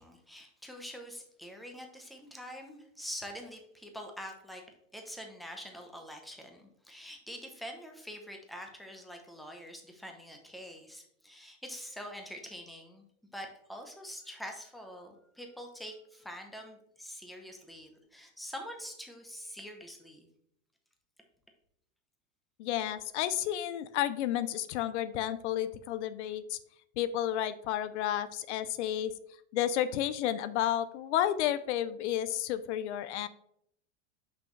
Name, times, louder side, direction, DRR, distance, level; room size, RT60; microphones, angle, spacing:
voice 1, 0.0-4.6 4.9-13.1 13.3-20.3, equal, ahead, 3 dB, 0.8 m, -45 dB
voice 2, 22.6-26.6 27.0-29.1 29.5-33.3, left 11 dB, 70° left, 14 dB, 0.6 m, -31 dB
6.0 x 5.9 x 3.2 m, 0.70 s
supercardioid pair, 145°, 36 cm